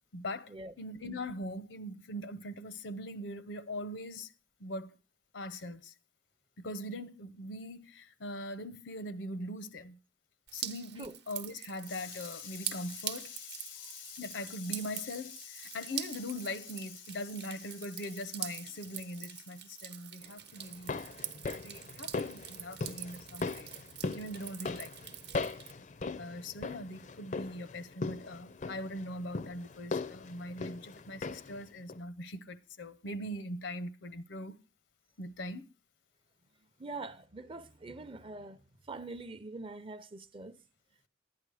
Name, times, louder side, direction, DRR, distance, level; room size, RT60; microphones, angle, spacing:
voice 1, 0.1-4.3 4.6-5.0 5.3-5.9 6.6-10.0 10.5-21.1 21.6-23.7 24.1-25.1 26.2-34.6 35.2-35.7, left 1 dB, 80° left, 0.8 m, -41 dB
Drip, 10.5-25.7, right 11 dB, 60° right, 0.9 m, -44 dB
sound 1, 20.6-31.6 31.9-32.0, left 3 dB, 40° left, 0.5 m, -39 dB
voice 2, 36.8-40.6, right 3 dB, 30° right, 0.6 m, -44 dB
11.5 x 9.6 x 4.8 m
head